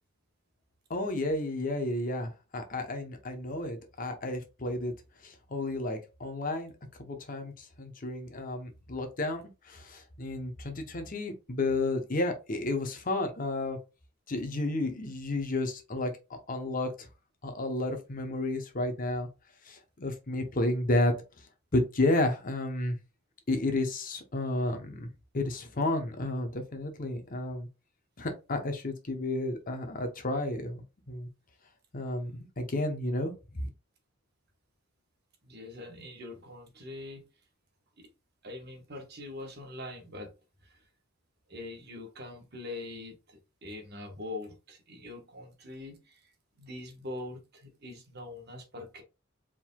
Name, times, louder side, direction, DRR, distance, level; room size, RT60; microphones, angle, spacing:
voice 1, 0.9-4.9 5.2-6.7 7.0-13.8 14.3-17.1 17.4-19.3 19.6-21.1 21.7-22.9 23.5-25.1 25.3-27.7 28.2-31.3 31.9-33.7, left 2 dB, 40° left, 0.9 m, -32 dB
voice 2, 35.4-37.3 38.0-38.1 38.4-40.3 40.6-40.8 41.5-46.3 46.6-49.0, left 2 dB, 50° right, 1.2 m, -43 dB
4.6 x 3.8 x 2.3 m
head